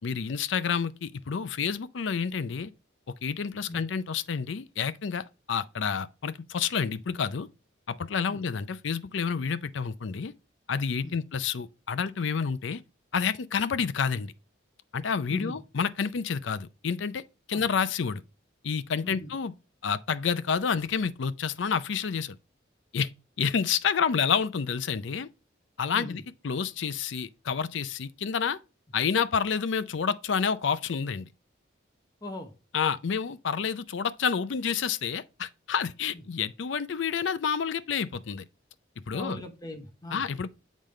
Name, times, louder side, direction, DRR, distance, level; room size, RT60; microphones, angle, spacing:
voice 1, 0.0-2.7 3.2-7.5 7.9-10.3 10.7-12.8 13.1-14.3 14.9-17.2 17.5-18.2 18.6-19.5 19.8-22.4 22.9-23.1 23.4-25.3 25.8-28.6 28.9-31.3 32.7-38.4 39.1-39.4 40.1-40.5, left 6 dB, 75° left, 0.5 m, -29 dB
voice 2, 32.2-32.5 36.1-36.2 39.1-40.3, left 1 dB, 20° left, 0.9 m, -39 dB
7.4 x 5.1 x 3.2 m
head